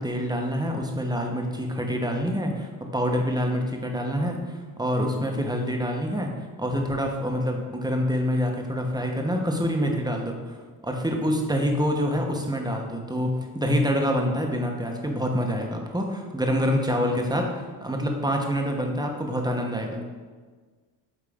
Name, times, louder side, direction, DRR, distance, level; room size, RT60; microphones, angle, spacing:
voice 1, 0.0-6.3 6.6-10.6 10.8-17.5 17.8-20.0, equal, 10° right, 2 dB, 1.1 m, -26 dB
8.7 x 3.6 x 3.6 m, 1.4 s
cardioid pair, 75°, 44 cm